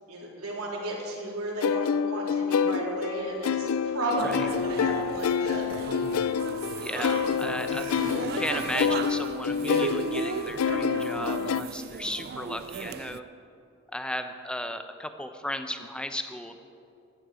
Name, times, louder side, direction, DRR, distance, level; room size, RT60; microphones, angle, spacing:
voice 1, 0.1-5.6, right 1 dB, 90° right, -3 dB, 3.5 m, -33 dB
sound 1, 1.6-11.6, left 7 dB, 80° left, 0.4 m, -28 dB
voice 2, 4.2-4.5 6.8-7.9 8.3-13.2 13.9-16.6, left 1 dB, 5° left, 8 dB, 0.6 m, -35 dB
sound 2, 4.2-13.2, right 6 dB, 45° right, 0.3 m, -36 dB
sound 3, 5.2-5.3 5.6-7.4 7.7-8.8, right 1 dB, 60° right, 3.2 m, -39 dB
15.0 x 12.0 x 5.0 m, 2.6 s
head